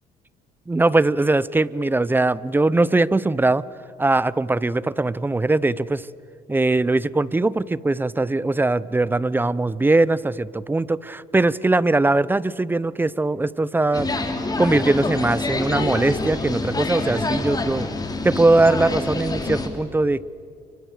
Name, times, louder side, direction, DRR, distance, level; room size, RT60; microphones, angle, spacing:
voice 1, 0.7-3.6 4.0-6.1 6.5-14.1 14.6-17.9 18.2-20.2, right 2 dB, 10° right, 19 dB, 0.6 m, -20 dB
sound 1, 13.9-19.7, left 2 dB, 20° left, 3.2 m, -26 dB
30.0 x 24.5 x 6.7 m, 2.4 s
cardioid pair, 110°, 17 cm